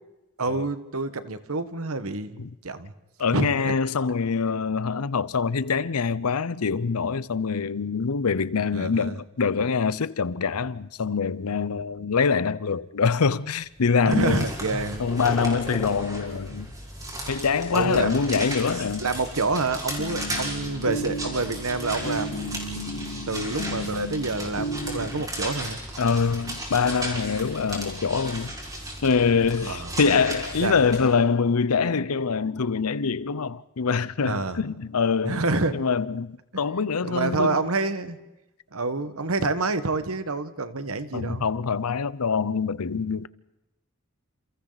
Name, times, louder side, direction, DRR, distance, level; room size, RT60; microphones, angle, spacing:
voice 1, 0.4-2.9 3.3-3.7 8.7-9.1 14.0-15.0 17.7-18.4 19.0-25.8 29.6-29.9 30.6-30.8 34.2-34.6 35.2-35.8 37.0-38.2 38.7-41.5, right 3 dB, 75° right, 1.5 m, -28 dB
voice 2, 3.2-14.4 15.0-16.7 17.3-19.1 20.3-20.4 26.0-28.5 29.0-35.4 35.7-37.6 41.1-43.3, left 5 dB, 85° left, 0.7 m, -24 dB
sound 1, 13.8-31.1, right 1 dB, 15° right, 5.3 m, -35 dB
sound 2, 19.5-25.2, equal, 50° left, 0.8 m, -34 dB
29.0 x 28.5 x 4.1 m
head